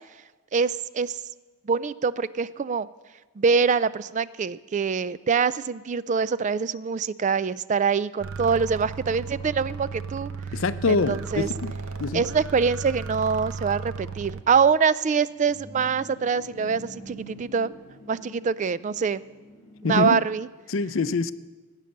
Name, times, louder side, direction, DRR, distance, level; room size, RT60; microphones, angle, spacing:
voice 1, 0.5-1.2 1.7-2.9 3.4-10.3 10.9-11.5 12.1-17.7 18.1-19.2 19.8-20.5, right 5 dB, 35° right, 17 dB, 0.3 m, -24 dB
sound 1, 8.2-14.4, right 5 dB, 85° right, 0.9 m, -35 dB
voice 2, 10.5-11.7 12.0-12.2 19.8-20.2 20.7-21.3, left 4 dB, 70° left, 14 dB, 0.6 m, -25 dB
sound 2, 15.0-20.6, equal, 5° right, 6.6 m, -46 dB
18.0 x 9.1 x 6.6 m, 1.2 s
head